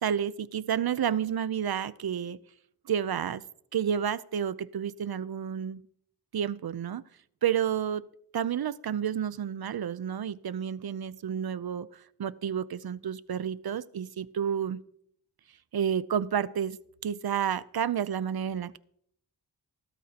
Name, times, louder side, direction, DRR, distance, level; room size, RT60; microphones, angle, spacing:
voice 1, 0.0-2.4 2.9-3.4 3.7-5.8 6.3-7.0 7.4-8.1 8.3-14.8 15.7-16.8 17.0-18.8, right 8 dB, 65° right, 17 dB, 0.6 m, -30 dB
17.5 x 12.5 x 2.9 m, 0.69 s
cardioid pair, 50°, 40 cm